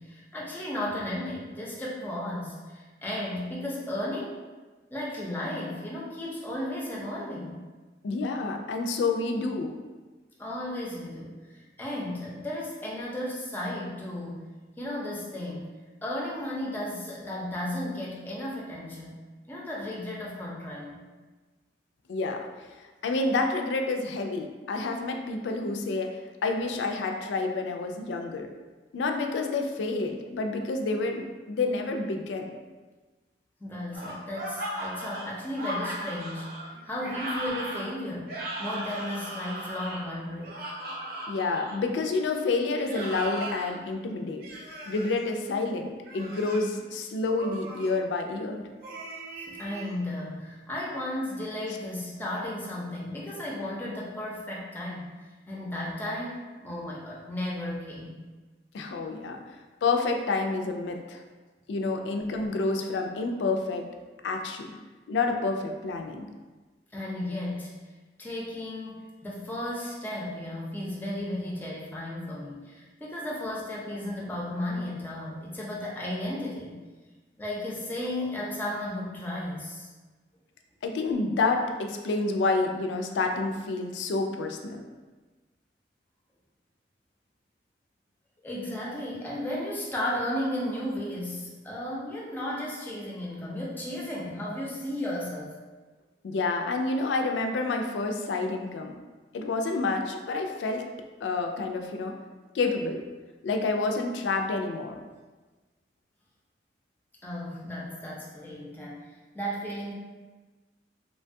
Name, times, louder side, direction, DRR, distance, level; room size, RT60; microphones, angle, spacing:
voice 1, 0.0-4.4 4.9-7.6 10.4-14.5 14.8-15.7 16.0-19.2 19.5-21.0 33.6-38.3 38.6-40.6 49.5-55.1 55.5-58.2 66.9-67.7 68.2-76.8 77.4-79.9 88.4-95.5 107.2-109.9, left 1 dB, 10° left, -4 dB, 0.5 m, -34 dB
voice 2, 8.0-9.7 22.1-22.5 23.0-26.1 26.4-28.5 28.9-32.6 41.3-44.5 44.9-48.6 58.7-59.4 59.8-61.2 61.7-63.8 64.2-64.8 65.1-66.3 80.8-84.8 96.2-99.0 99.3-100.8 101.2-102.1 102.5-103.0 103.4-105.0, left 3 dB, 85° left, 4 dB, 0.3 m, -29 dB
sound 1, 33.9-41.8 42.8-43.7 44.4-45.2 46.0-46.7 47.4-47.9 48.8-50.0, right 1 dB, 55° right, 0.5 m, -37 dB
3.1 x 2.2 x 2.6 m, 1.3 s
head